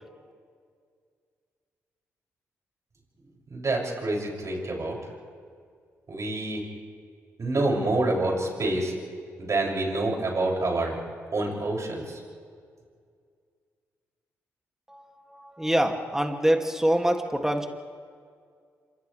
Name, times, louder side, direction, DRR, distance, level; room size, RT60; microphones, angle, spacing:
voice 1, 3.5-5.0 6.1-6.6 7.4-8.9 9.4-11.0 11.3-12.2, right 2 dB, 45° right, -1 dB, 7.2 m, -27 dB
voice 2, 14.9-17.7, right 1 dB, 5° right, 3 dB, 2.6 m, -25 dB
30.0 x 26.5 x 3.5 m, 2.1 s
hypercardioid pair, 40°, 7 cm